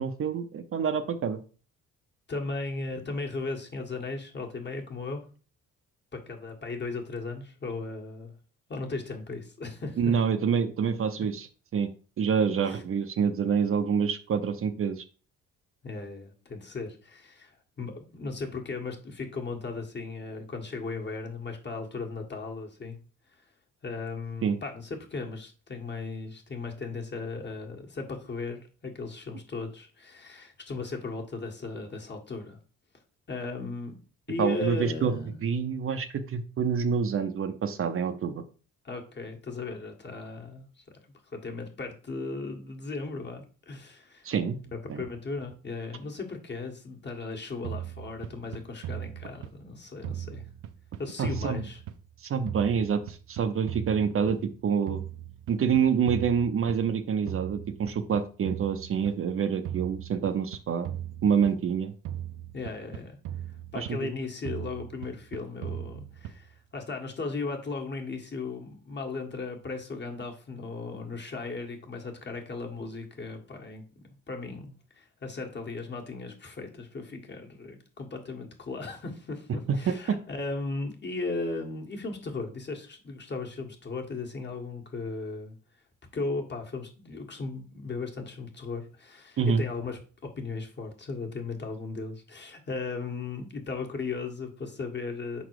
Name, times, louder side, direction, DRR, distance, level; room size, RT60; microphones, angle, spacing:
voice 1, 0.0-1.4 10.0-11.5 11.7-11.9 12.2-15.0 24.4-24.6 34.4-35.1 35.4-38.4 44.2-44.6 44.9-45.0 51.2-51.6 52.2-55.0 55.5-60.9 61.2-61.9 63.7-64.1 80.1-80.2 89.4-89.6, right 6 dB, 45° right, 9 dB, 0.7 m, -27 dB
voice 2, 2.3-5.2 6.1-8.3 8.7-10.1 12.7-12.8 15.8-17.5 17.8-23.0 23.8-32.6 33.3-33.9 34.3-35.4 38.8-40.8 41.3-44.3 44.7-50.4 51.0-51.8 62.5-63.2 63.7-85.5 86.1-95.4, left 3 dB, 35° left, 2 dB, 1.6 m, -36 dB
sound 1, 47.6-49.7 50.0-52.2 52.5-54.6 54.9-57.0 57.3-59.2 59.6-61.8 62.0-64.1 64.4-66.6, right 11 dB, 85° right, 0.7 m, -39 dB
5.4 x 4.1 x 4.7 m, 0.38 s
cardioid pair, 90°, 30 cm